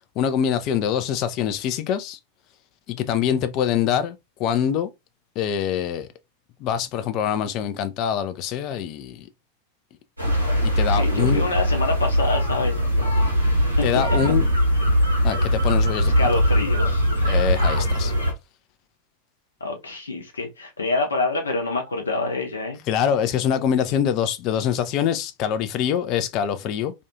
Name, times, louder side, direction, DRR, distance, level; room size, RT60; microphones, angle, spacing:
voice 1, 0.2-2.2 2.9-4.9 5.4-6.1 6.6-9.3 10.6-11.4 13.8-14.5 15.2-16.3 17.3-18.1 22.9-26.9, left 9 dB, 40° left, 0.4 m, -24 dB
sound 1, 10.2-18.3, equal, 85° right, 0.9 m, -21 dB
voice 2, 10.9-13.5 13.8-14.0 14.9-15.0 16.2-17.1 19.6-22.8, left 3 dB, 70° left, 0.7 m, -27 dB
2.5 x 2.3 x 2.6 m
figure-of-eight pair, 90°, 0 cm